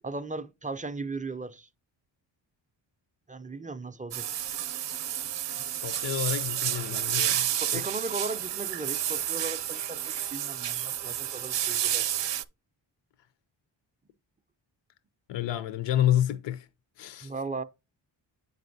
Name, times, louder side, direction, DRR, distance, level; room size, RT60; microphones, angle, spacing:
voice 1, 0.0-1.7 3.3-4.3 7.5-12.1 17.2-17.6, right 3 dB, 20° right, 0.3 m, -37 dB
sound 1, 4.1-12.4, right 11 dB, 65° right, 0.6 m, -30 dB
voice 2, 5.8-7.8 15.3-16.7 17.0-17.3, left 11 dB, 70° left, 0.5 m, -29 dB
7.4 x 5.3 x 2.6 m
cardioid pair, 60°, 47 cm